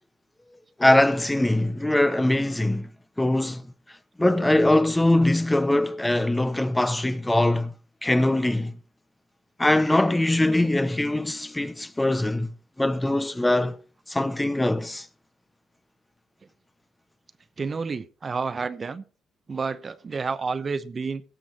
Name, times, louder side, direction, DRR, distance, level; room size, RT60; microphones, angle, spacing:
voice 1, 0.8-2.9 3.2-3.6 4.2-7.7 8.0-8.7 9.6-12.5 12.8-13.8 14.1-15.1, left 1 dB, 10° left, 0.6 m, -22 dB
voice 2, 17.6-19.0 19.5-21.2, right 4 dB, 35° right, 0.8 m, -30 dB
17.0 x 6.2 x 4.2 m
cardioid pair, 90°, 0 cm